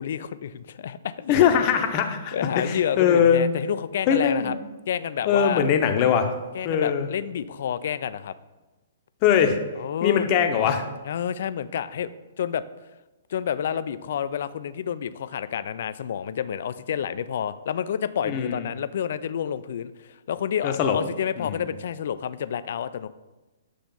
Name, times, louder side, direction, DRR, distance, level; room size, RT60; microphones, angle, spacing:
voice 1, 0.0-1.3 2.3-4.5 4.9-5.6 6.5-8.3 9.8-10.3 11.0-12.6 13.3-23.1, left 9 dB, 50° left, 14 dB, 0.3 m, -29 dB
voice 2, 1.3-3.4 4.1-4.6 5.3-6.3 6.6-7.1 9.2-9.6 10.0-10.8 18.2-18.6 20.6-21.0 21.4-21.6, left 8 dB, 35° left, 5 dB, 0.8 m, -21 dB
7.8 x 3.4 x 5.4 m, 1.1 s
figure-of-eight pair, 120°, 0 cm